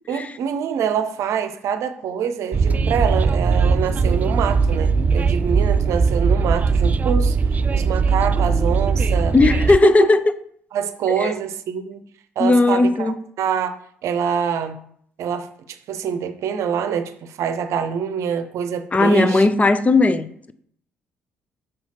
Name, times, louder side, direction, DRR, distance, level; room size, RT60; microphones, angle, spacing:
voice 1, 0.1-7.4 7.7-9.3 9.8-10.1 10.7-12.0 12.4-14.8 15.2-19.5, right 7 dB, 55° right, 0.7 m, -25 dB
Train, 2.5-9.8, right 5 dB, 25° right, 0.3 m, -19 dB
voice 2, 9.3-10.2 11.1-11.3 12.4-13.2 18.9-20.5, left 2 dB, 25° left, 0.6 m, -16 dB
6.5 x 5.6 x 4.4 m
figure-of-eight pair, 50°, 6 cm